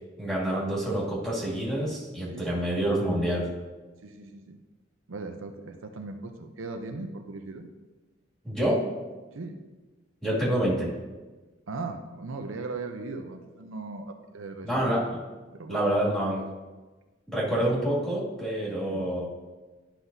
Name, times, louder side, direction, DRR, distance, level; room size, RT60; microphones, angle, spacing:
voice 1, 0.2-3.5 8.4-8.8 10.2-10.9 14.6-15.2 15.7-16.4 17.3-19.2, right 1 dB, 5° left, -8 dB, 2.3 m, -27 dB
voice 2, 2.3-2.7 4.0-4.6 5.1-7.7 9.3-9.6 11.7-15.0 15.5-16.1 17.5-17.8 18.9-19.1, right 3 dB, 85° right, 5 dB, 0.7 m, -38 dB
11.5 x 5.9 x 2.7 m, 1.2 s
head